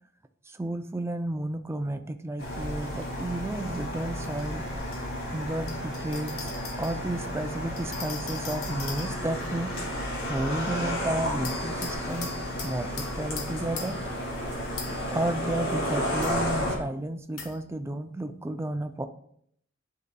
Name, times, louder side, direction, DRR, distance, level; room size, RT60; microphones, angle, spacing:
voice 1, 0.5-4.7 5.3-6.5 6.8-9.7 10.3-12.3 12.6-14.0 15.1-19.0, right 1 dB, 10° right, 8 dB, 0.4 m, -32 dB
sound 1, 2.4-16.8, equal, 65° left, 2.1 m, -32 dB
sound 2, 3.0-3.1 4.2-5.0 5.7-7.0 7.8-9.5 11.4-14.1 14.8-15.1 16.2-16.4 17.4-17.6, left 5 dB, 90° left, 1.1 m, -41 dB
11.0 x 4.0 x 2.2 m, 0.67 s
head